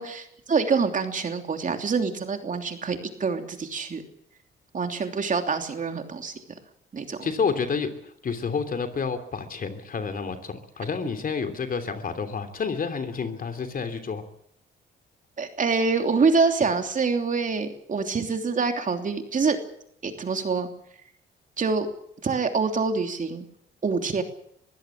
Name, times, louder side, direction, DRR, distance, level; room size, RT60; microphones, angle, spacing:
voice 1, 0.0-4.0 4.7-6.3 6.9-7.2 15.4-19.6 20.0-20.7 21.6-21.9 22.2-23.5 23.8-24.2, right 4 dB, 40° right, 5 dB, 3.1 m, -25 dB
voice 2, 7.2-7.9 8.2-14.2, left 5 dB, 45° left, 8 dB, 3.1 m, -29 dB
22.5 x 15.5 x 8.5 m, 0.71 s
cardioid pair, 90°, 20 cm